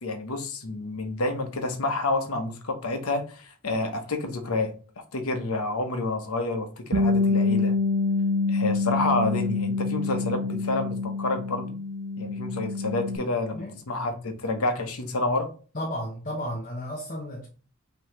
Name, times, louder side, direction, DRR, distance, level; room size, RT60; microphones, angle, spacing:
voice 1, 0.0-4.7 5.1-7.7 8.5-11.7 12.2-15.5, left 2 dB, 90° left, 1.0 m, -29 dB
Bass guitar, 6.9-13.2, left 3 dB, 80° right, 0.8 m, -26 dB
voice 2, 15.7-17.5, equal, 40° left, 0.9 m, -33 dB
5.4 x 3.0 x 3.0 m
head